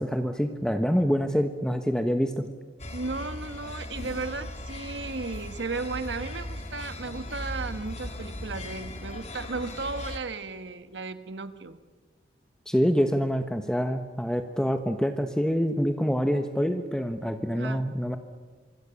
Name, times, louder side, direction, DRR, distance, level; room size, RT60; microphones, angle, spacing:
voice 1, 0.0-2.5 12.7-18.2, equal, 5° left, 6 dB, 1.1 m, -26 dB
sound 1, 2.8-10.2, left 1 dB, 40° left, 2.2 m, -38 dB
voice 2, 2.9-11.8 17.6-17.8, right 3 dB, 80° right, 10 dB, 1.5 m, -35 dB
26.0 x 25.0 x 7.0 m, 1.4 s
head